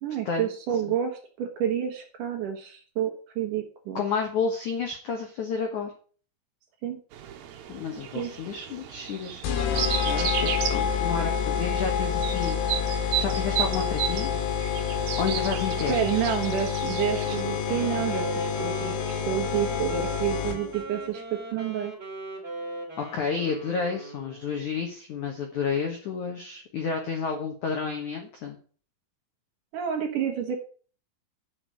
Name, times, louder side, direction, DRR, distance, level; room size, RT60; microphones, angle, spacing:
voice 1, 0.0-4.0 6.8-7.0 8.1-8.3 15.9-21.2 21.5-21.9 29.7-30.6, right 9 dB, 90° right, 2 dB, 1.8 m, -29 dB
voice 2, 3.9-5.9 7.7-14.4 15.2-16.3 23.0-28.6, left 5 dB, 85° left, 3 dB, 1.7 m, -31 dB
sound 1, 7.1-17.4, right 10 dB, 70° right, 2.4 m, -34 dB
sound 2, 9.4-20.8, left 7 dB, 65° left, 3.2 m, -28 dB
Wind instrument woodwind instrument, 17.2-24.6, right 2 dB, 20° right, 1.8 m, -39 dB
8.8 x 6.8 x 7.7 m, 0.41 s
omnidirectional pair, 5.8 m